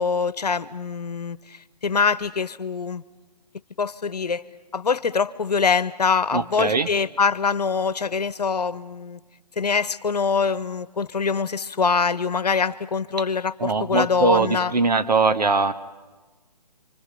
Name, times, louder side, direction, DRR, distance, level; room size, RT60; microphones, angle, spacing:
voice 1, 0.0-1.4 1.8-3.0 3.8-4.4 4.7-9.2 9.6-14.7, left 5 dB, 70° left, 17 dB, 1.1 m, -24 dB
voice 2, 6.3-6.9 13.6-15.7, right 3 dB, 70° right, 9 dB, 1.6 m, -21 dB
29.5 x 25.5 x 5.5 m, 1.2 s
figure-of-eight pair, 145°, 21 cm